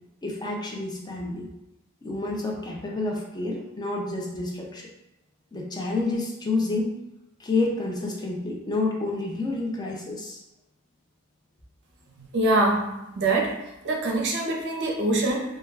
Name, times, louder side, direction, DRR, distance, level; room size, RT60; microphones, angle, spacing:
voice 1, 0.2-1.5 2.0-4.9 5.5-6.9 7.4-10.4, left 2 dB, 20° left, -1 dB, 0.4 m, -29 dB
voice 2, 12.2-13.6 13.8-15.6, right 2 dB, 55° right, 0 dB, 0.5 m, -24 dB
2.2 x 2.2 x 3.3 m, 0.91 s
head